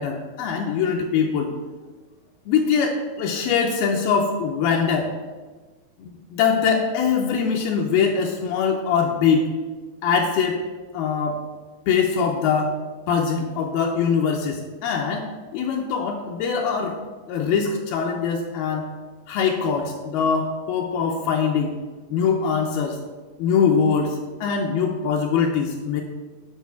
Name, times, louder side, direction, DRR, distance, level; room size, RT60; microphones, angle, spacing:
voice 1, 0.0-1.5 2.5-5.1 6.0-9.4 10.0-10.6 10.9-11.4 11.9-12.8 13.1-17.0 17.3-18.9 19.3-21.7 22.1-23.0 23.4-26.0, left 6 dB, 80° left, 1 dB, 2.4 m, -22 dB
9.5 x 4.1 x 6.9 m, 1.3 s
omnidirectional pair, 4.6 m